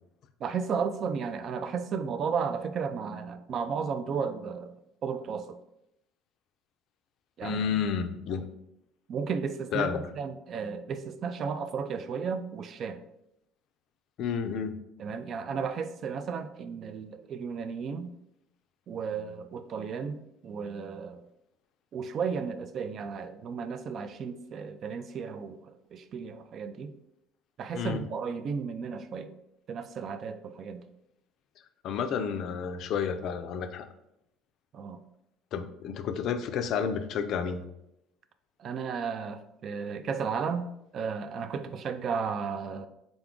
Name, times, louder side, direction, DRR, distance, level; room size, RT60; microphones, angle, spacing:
voice 1, 0.4-4.7 5.0-5.6 7.4-7.6 9.1-13.0 15.0-18.1 18.9-21.2 21.9-26.9 27.6-29.3 29.7-30.8 34.7-35.0 38.6-40.7 40.9-42.9, right 6 dB, 50° right, 11 dB, 0.3 m, -34 dB
voice 2, 7.4-8.5 9.7-10.1 14.2-14.7 27.7-28.0 31.8-33.9 35.5-37.6, left 7 dB, 60° left, 9 dB, 0.3 m, -31 dB
3.8 x 2.3 x 3.6 m, 0.81 s
hypercardioid pair, 65°, 0 cm